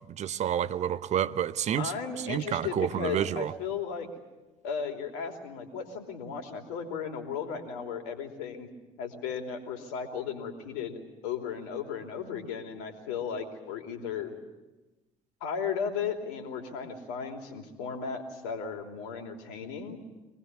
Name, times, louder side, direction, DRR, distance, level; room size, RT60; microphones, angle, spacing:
voice 1, 0.1-1.9 2.2-3.5, right 10 dB, 40° right, 0.9 m, -29 dB
voice 2, 1.8-4.1 4.6-8.7 9.0-14.3 15.4-20.0, left 6 dB, 65° left, 3.2 m, -35 dB
25.0 x 19.5 x 9.6 m
figure-of-eight pair, 55°, 17 cm